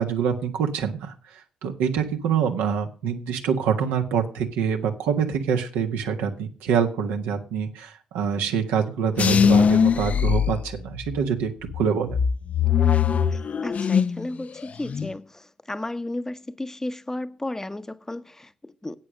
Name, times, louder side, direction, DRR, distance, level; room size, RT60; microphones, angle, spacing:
voice 1, 0.0-12.2, right 7 dB, 70° right, 1.6 m, -25 dB
sound 1, 9.2-11.2 11.7-14.3 14.6-15.1, left 7 dB, 45° left, 0.6 m, -21 dB
voice 2, 13.3-19.0, left 1 dB, 15° left, 1.0 m, -34 dB
10.5 x 8.8 x 6.4 m
hypercardioid pair, 45°, 3 cm